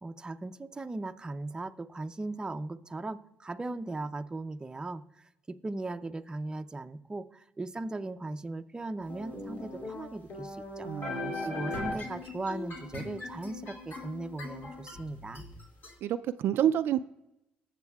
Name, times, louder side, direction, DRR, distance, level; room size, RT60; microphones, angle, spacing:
voice 1, 0.0-10.9 11.4-15.4, right 2 dB, 20° right, 8 dB, 0.6 m, -38 dB
sound 1, 9.1-15.9, left 2 dB, 60° left, 2.4 m, -39 dB
voice 2, 10.8-11.5 16.0-17.0, right 10 dB, 75° right, 11 dB, 0.3 m, -28 dB
19.0 x 7.4 x 2.3 m, 0.89 s
cardioid pair, 90°, 4 cm